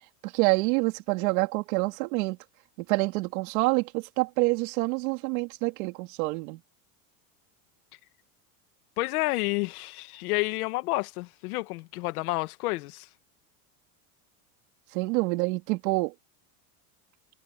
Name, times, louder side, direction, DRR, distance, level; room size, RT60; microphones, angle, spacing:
voice 1, 0.2-2.4 2.9-6.6 14.9-16.1, right 24 dB, 65° right, 3.4 m, -27 dB
voice 2, 9.0-13.1, left 22 dB, 75° left, 2.0 m, -30 dB
supercardioid pair, 165°, 45 cm